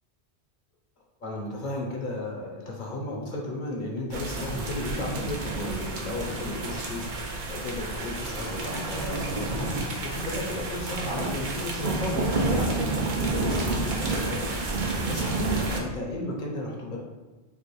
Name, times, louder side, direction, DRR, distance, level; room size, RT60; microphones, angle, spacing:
voice 1, 1.2-9.7 10.0-14.7 15.1-17.0, left 1 dB, 55° left, -1 dB, 0.7 m, -34 dB
sound 1, 4.1-15.8, right 2 dB, 55° right, 0.7 m, -30 dB
5.3 x 2.1 x 3.0 m, 1.3 s
omnidirectional pair, 1.1 m